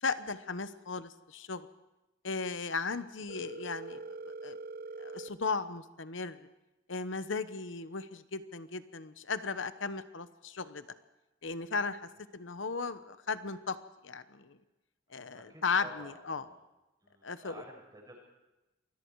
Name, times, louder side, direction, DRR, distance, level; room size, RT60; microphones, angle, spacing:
voice 1, 0.0-1.7 2.2-4.6 5.0-6.5 6.9-10.8 11.4-13.8 14.0-14.6 15.1-16.5 17.2-17.6, left 4 dB, 70° left, 12 dB, 1.0 m, -36 dB
Telephone, 3.3-5.3, right 3 dB, 50° right, 0.7 m, -43 dB
voice 2, 15.3-16.6 17.0-18.2, equal, 20° right, -1 dB, 6.8 m, -52 dB
27.0 x 21.5 x 4.8 m, 1.0 s
head